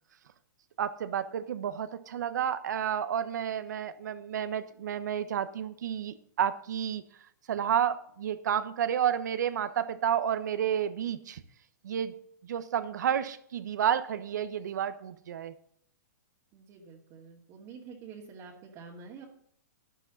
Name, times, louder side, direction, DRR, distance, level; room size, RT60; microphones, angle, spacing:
voice 1, 0.8-7.0 7.5-11.4 11.8-12.1 12.4-15.5, right 9 dB, 70° right, 13 dB, 1.1 m, -31 dB
voice 2, 16.5-19.2, right 5 dB, 35° right, -4 dB, 2.3 m, -48 dB
12.0 x 10.0 x 4.0 m, 0.65 s
hypercardioid pair, 135°, 10 cm